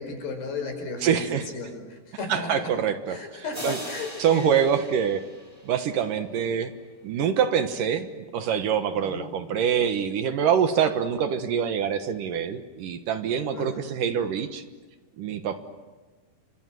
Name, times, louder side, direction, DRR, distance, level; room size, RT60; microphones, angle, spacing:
voice 1, 0.0-2.8 3.1-4.5 8.9-9.3 13.5-13.9, left 3 dB, 85° left, 4 dB, 7.5 m, -35 dB
voice 2, 1.0-1.5 2.3-3.8 4.2-5.3 5.6-6.7 7.0-8.1 8.3-14.6 15.2-15.6, right 8 dB, 65° right, 9 dB, 2.6 m, -25 dB
sound 1, 3.5-6.2, equal, 10° right, 4.9 m, -40 dB
29.5 x 26.0 x 7.7 m, 1.3 s
omnidirectional pair, 4.5 m